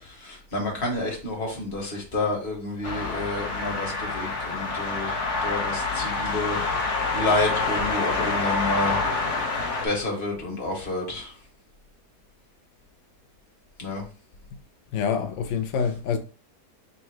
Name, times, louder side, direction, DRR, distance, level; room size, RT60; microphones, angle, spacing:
voice 1, 0.0-5.1 5.4-6.6 7.1-9.0 9.8-11.3 13.8-14.1, left 2 dB, 35° left, 1.4 m, -29 dB
sound 1, 2.8-9.9, left 3 dB, 55° left, 1.0 m, -27 dB
voice 2, 14.9-16.2, left 6 dB, 90° left, 0.6 m, -26 dB
4.1 x 2.3 x 4.4 m
omnidirectional pair, 1.8 m